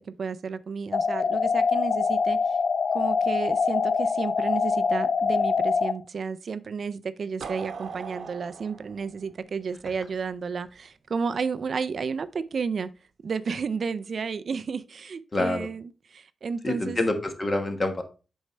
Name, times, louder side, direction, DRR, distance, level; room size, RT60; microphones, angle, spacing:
voice 1, 0.0-2.6 2.9-12.9 13.2-17.0, right 5 dB, 55° right, 0.4 m, -32 dB
sound 1, 0.9-5.9, left 5 dB, 60° left, 0.6 m, -24 dB
sound 2, 7.4-10.2, right 5 dB, 85° right, 0.9 m, -39 dB
voice 2, 15.3-15.7 16.6-18.0, left 2 dB, 30° left, 1.4 m, -26 dB
8.1 x 5.4 x 3.2 m
wide cardioid pair, 135°, 0 cm